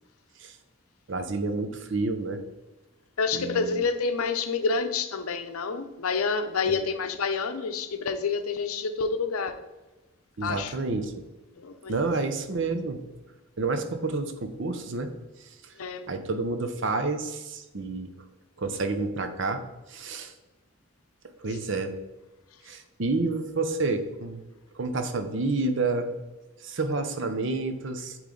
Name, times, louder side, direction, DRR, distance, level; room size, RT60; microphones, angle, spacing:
voice 1, 1.1-2.4 3.3-3.8 6.6-6.8 10.4-11.1 11.9-13.0 13.6-15.1 15.6-15.7 16.1-18.1 18.6-19.6 19.9-20.3 21.4-22.0 22.7-24.4 24.7-26.1 26.6-28.2, right 3 dB, 60° right, 7 dB, 0.6 m, -29 dB
voice 2, 3.2-9.6 10.4-10.8 11.6-12.1 15.8-16.0, left 4 dB, 90° left, 9 dB, 0.6 m, -28 dB
8.3 x 3.2 x 3.8 m, 1.1 s
head